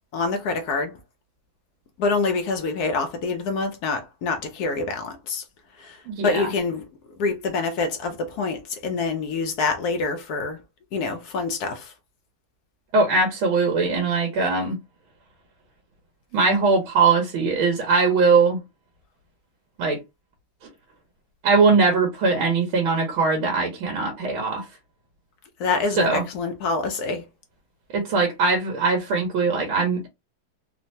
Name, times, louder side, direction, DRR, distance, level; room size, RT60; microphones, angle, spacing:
voice 1, 0.1-1.0 2.0-5.4 5.8-6.9 7.2-10.6 10.9-11.9 25.6-27.2, left 4 dB, 80° left, 0.9 m, -26 dB
voice 2, 6.1-6.5 12.9-14.8 16.3-18.6 19.8-20.0 21.4-24.7 26.0-26.2 27.9-30.1, right 4 dB, 85° right, 1.7 m, -21 dB
3.8 x 2.1 x 2.6 m
omnidirectional pair, 2.2 m